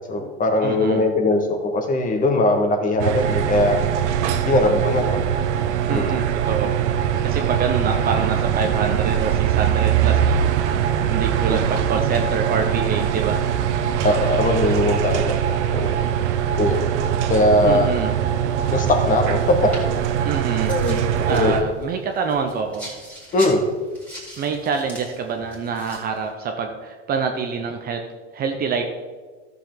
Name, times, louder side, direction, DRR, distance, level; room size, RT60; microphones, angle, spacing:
voice 1, 0.1-3.8 4.4-5.2 5.9-6.1 14.0-15.4 15.7-15.9 16.6-16.9 17.3-17.9 18.7-19.7 20.7-21.0 21.3-21.6 23.3-23.6, left 2 dB, 20° left, 4 dB, 1.4 m, -20 dB
voice 2, 0.6-1.1 5.9-13.4 17.6-18.2 20.2-20.8 21.3-23.0 24.4-28.0 28.3-28.8, right 5 dB, 25° right, 4 dB, 0.8 m, -26 dB
Small General Store, 3.0-21.6, right 9 dB, 75° right, 1.0 m, -22 dB
sound 1, 19.4-26.3, equal, 5° left, 2.8 m, -41 dB
13.0 x 6.9 x 3.9 m, 1.4 s
supercardioid pair, 135°, 35 cm